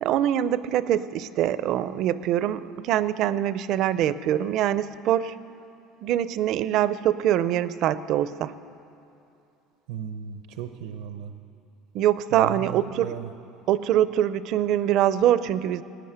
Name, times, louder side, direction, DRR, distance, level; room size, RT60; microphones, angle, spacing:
voice 1, 0.0-5.3 6.0-8.5 11.9-13.1 13.7-15.8, right 11 dB, 50° right, 15 dB, 0.5 m, -24 dB
voice 2, 9.9-11.3 12.3-13.3, right 8 dB, 90° right, 7 dB, 0.8 m, -36 dB
18.0 x 9.9 x 8.0 m, 2.7 s
cardioid pair, 165°, 0 cm